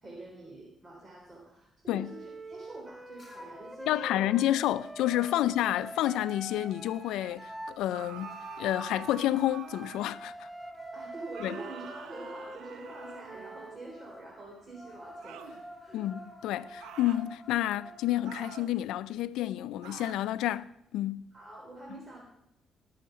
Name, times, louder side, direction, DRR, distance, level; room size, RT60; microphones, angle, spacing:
voice 1, 0.0-4.3 5.3-5.4 10.9-16.1 21.3-22.2, right 2 dB, 30° right, 3.3 m, -46 dB
Wind instrument woodwind instrument, 1.9-7.8 8.2-13.8, right 1 dB, 15° right, 0.9 m, -45 dB
sound 1, 3.2-3.8 4.2-8.4 9.9-18.5, equal, 30° left, 5.1 m, -51 dB
voice 2, 3.9-10.5 11.4-11.6 15.9-21.3, left 13 dB, 90° left, 0.4 m, -30 dB
sound 2, 7.9-10.2 11.3-13.6 15.2-15.6 16.8-17.3 18.2-18.8 19.8-20.3, right 9 dB, 85° right, 0.8 m, -47 dB
17.5 x 6.5 x 6.7 m
cardioid pair, 90°, 0 cm